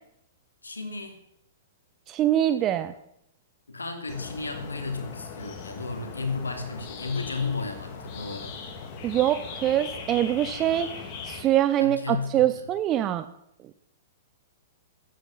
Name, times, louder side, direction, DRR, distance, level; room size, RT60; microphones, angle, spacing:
voice 1, 0.6-1.2 3.7-8.6 11.8-12.7, left 4 dB, 80° left, 5 dB, 2.8 m, -33 dB
voice 2, 2.1-2.9 9.0-10.9 11.2-13.2, right 12 dB, 25° right, 11 dB, 0.7 m, -24 dB
sound 1, 4.1-11.4, left 5 dB, 40° left, 2.4 m, -39 dB
14.5 x 9.3 x 7.2 m, 0.76 s
figure-of-eight pair, 110°, 0 cm